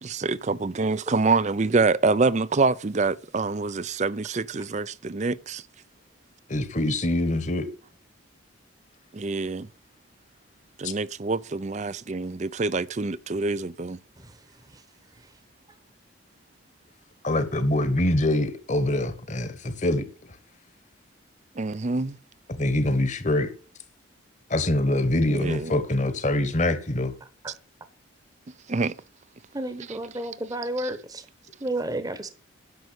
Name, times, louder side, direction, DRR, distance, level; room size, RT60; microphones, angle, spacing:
voice 1, 0.0-5.6 9.1-9.7 10.8-14.0 21.6-22.2 25.3-25.8 28.7-29.0 29.9-30.3 30.8-30.9, right 3 dB, 35° right, 0.5 m, -26 dB
voice 2, 6.5-7.7 10.8-10.9 17.2-20.1 22.6-23.5 24.5-27.1, left 1 dB, 35° left, 1.2 m, -24 dB
voice 3, 29.5-31.2 31.6-32.3, right 1 dB, 20° right, 1.0 m, -31 dB
11.0 x 6.6 x 8.1 m
head